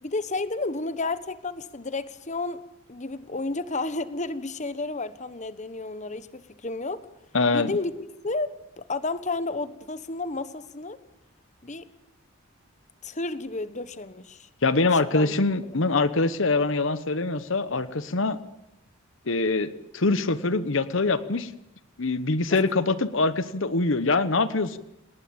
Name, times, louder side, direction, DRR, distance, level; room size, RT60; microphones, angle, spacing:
voice 1, 0.0-2.6 2.9-7.1 7.5-7.9 8.2-11.0 11.6-11.8 13.0-14.5 15.1-15.4 22.5-22.6, left 3 dB, 35° left, 13 dB, 1.3 m, -31 dB
voice 2, 7.3-7.7 14.6-18.4 19.3-21.5 22.0-24.8, left 3 dB, 65° left, 14 dB, 1.1 m, -24 dB
28.5 x 19.0 x 8.8 m, 0.85 s
head